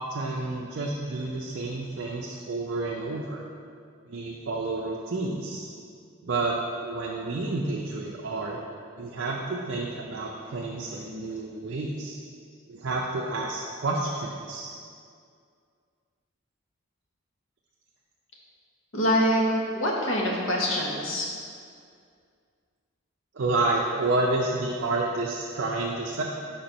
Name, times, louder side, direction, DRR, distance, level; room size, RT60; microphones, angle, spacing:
voice 1, 0.0-3.4 4.1-5.7 6.2-6.6 6.8-8.6 9.0-12.2 12.7-14.7 23.3-26.2, right 2 dB, 55° right, -2 dB, 0.5 m, -30 dB
voice 2, 18.9-21.3, equal, 60° left, -2 dB, 1.0 m, -25 dB
5.2 x 4.4 x 5.2 m, 2.3 s
head